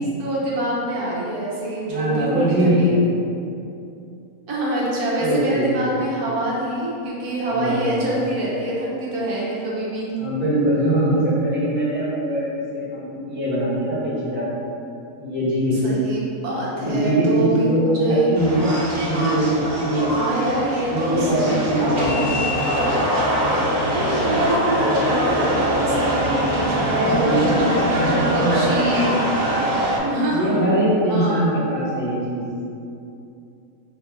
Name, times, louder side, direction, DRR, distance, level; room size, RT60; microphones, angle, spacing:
voice 1, 0.0-2.9 4.5-10.1 15.8-18.3 20.1-22.2 23.9-29.2 30.0-30.6 31.0-31.4, right 1 dB, 85° right, -6 dB, 1.5 m, -25 dB
voice 2, 1.9-3.0 5.2-5.9 7.5-8.0 10.2-14.5 15.2-15.9 16.7-20.1 20.8-22.2 26.9-29.2 30.3-32.4, right 1 dB, 10° right, -9 dB, 1.1 m, -22 dB
sound 1, 18.3-30.0, equal, 60° right, 1.6 m, -23 dB
sound 2, 21.8-28.5, equal, 35° left, 0.6 m, -33 dB
5.5 x 2.6 x 3.6 m, 2.6 s
omnidirectional pair, 1.6 m